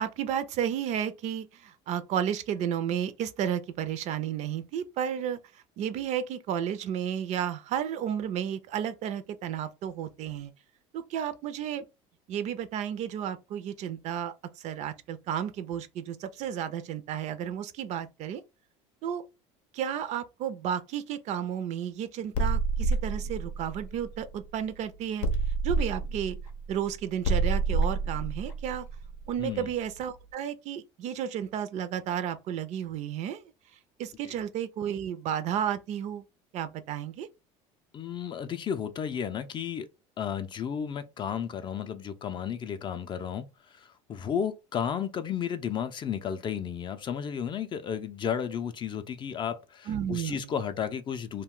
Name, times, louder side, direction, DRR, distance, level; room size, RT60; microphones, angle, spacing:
voice 1, 0.0-10.5 10.9-11.9 12.3-18.4 19.0-19.2 19.7-25.3 25.6-26.4 26.7-28.9 29.3-33.4 34.0-36.2 36.5-37.3 49.9-50.5, right 9 dB, 55° right, 0.4 m, -32 dB
sound 1, 22.3-24.7 25.2-29.9, right 3 dB, 85° left, 0.6 m, -29 dB
voice 2, 29.4-29.7 34.2-34.3 37.9-39.9 40.2-51.4, left 8 dB, 35° left, 0.4 m, -33 dB
2.3 x 2.2 x 3.6 m
supercardioid pair, 105°, 14 cm